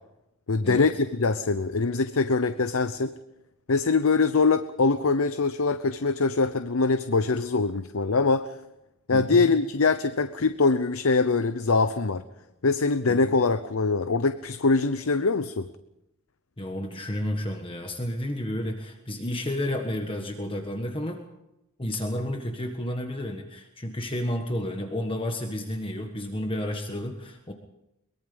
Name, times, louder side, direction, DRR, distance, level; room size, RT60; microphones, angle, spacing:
voice 1, 0.5-0.9 1.2-3.2 3.7-8.5 9.1-12.2 12.6-15.7, left 4 dB, 75° left, 12 dB, 0.8 m, -23 dB
voice 2, 9.1-9.5 13.1-13.4 16.6-21.2 21.8-27.5, left 1 dB, 25° left, 4 dB, 1.4 m, -31 dB
23.0 x 22.0 x 5.3 m, 0.90 s
head